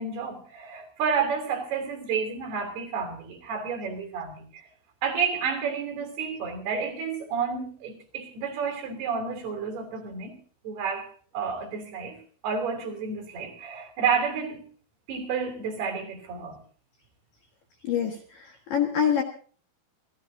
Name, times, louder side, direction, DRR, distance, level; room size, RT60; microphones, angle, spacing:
voice 1, 0.0-4.7 5.0-10.4 10.6-11.1 11.3-12.2 12.4-14.6 15.1-16.6, right 6 dB, 55° right, 4.9 m, -30 dB
voice 2, 17.8-19.2, left 8 dB, 60° left, 2.7 m, -26 dB
27.0 x 16.0 x 2.8 m
omnidirectional pair, 5.6 m